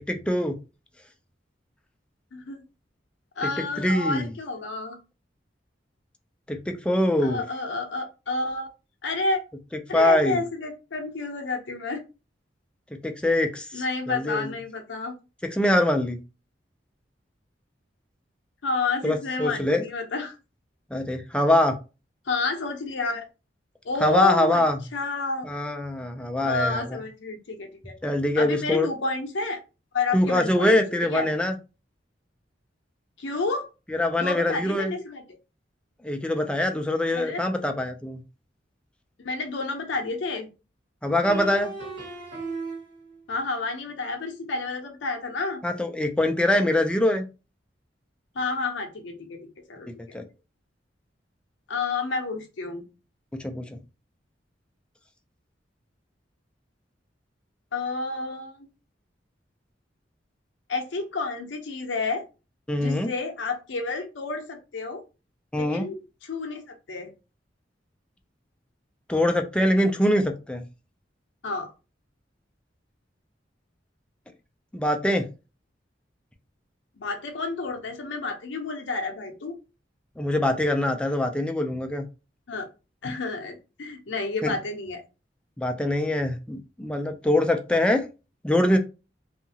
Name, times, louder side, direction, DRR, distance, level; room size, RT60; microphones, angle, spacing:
voice 1, 0.1-0.5 3.4-4.3 6.5-7.4 9.9-10.4 13.0-14.5 15.5-16.2 19.0-19.8 20.9-21.7 24.0-24.8 25.4-26.9 28.0-28.9 30.1-31.5 33.9-34.9 36.0-38.2 41.0-41.7 45.6-47.3 50.1-50.2 53.4-53.6 62.7-63.1 65.5-65.9 69.1-70.6 74.7-75.2 80.2-82.0 84.4-84.5 85.6-88.0 88.4-88.8, left 1 dB, 5° left, 5 dB, 0.4 m, -23 dB
voice 2, 2.3-2.6 3.4-5.0 7.2-8.7 9.0-9.4 9.9-12.0 13.7-15.1 18.6-20.4 22.3-23.2 23.8-24.6 24.9-25.4 26.4-28.0 28.4-29.6 29.9-30.7 31.1-31.3 33.2-33.7 34.2-35.2 37.1-37.4 39.2-40.5 43.3-45.6 48.3-49.4 49.7-49.9 51.7-52.9 57.7-58.7 60.7-62.3 62.7-65.0 65.5-67.1 71.4-71.7 77.0-79.6 82.5-82.7 83.0-85.0, left 3 dB, 80° left, 4 dB, 0.6 m, -30 dB
sound 1, 39.9-40.0 41.2-43.2, right 3 dB, 80° right, 1.5 m, -36 dB
2.8 x 2.4 x 2.7 m, 0.30 s
head